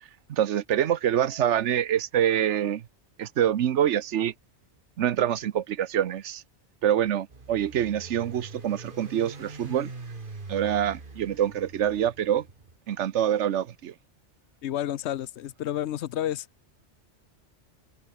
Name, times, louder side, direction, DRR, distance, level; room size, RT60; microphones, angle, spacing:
voice 1, 0.3-2.9 3.2-4.3 5.0-6.4 6.8-9.9 10.5-12.5 12.9-13.9, right 10 dB, 85° right, 1.1 m, -25 dB
sound 1, 7.3-12.8, right 3 dB, 50° right, 2.3 m, -43 dB
voice 2, 14.6-16.5, left 12 dB, 75° left, 0.9 m, -30 dB
omnidirectional pair, 1.2 m